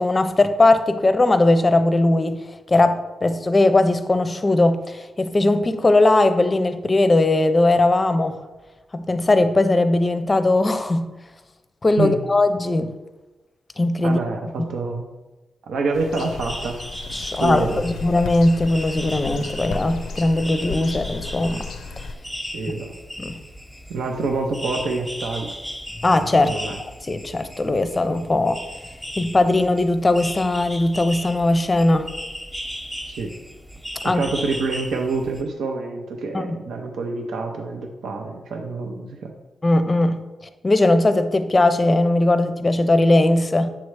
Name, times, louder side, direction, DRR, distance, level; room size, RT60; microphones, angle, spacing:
voice 1, 0.0-2.4 2.7-8.4 8.9-11.1 11.8-12.9 13.8-14.2 17.1-21.7 23.2-23.4 26.0-26.5 27.0-28.6 29.2-32.1 34.0-34.2 36.3-36.6 39.6-40.2 40.6-43.7, left 2 dB, 30° left, 10 dB, 0.5 m, -19 dB
voice 2, 14.0-15.0 15.7-16.8 17.2-17.8 22.5-22.9 23.9-25.5 26.4-26.8 33.1-33.3 34.0-39.3, right 3 dB, 85° right, 3 dB, 0.6 m, -27 dB
sound 1, 15.9-22.1, left 4 dB, 90° left, 0.4 m, -34 dB
sound 2, 16.1-35.4, equal, 5° right, 0.8 m, -36 dB
7.4 x 3.1 x 4.7 m, 1.1 s
cardioid pair, 85°, 0 cm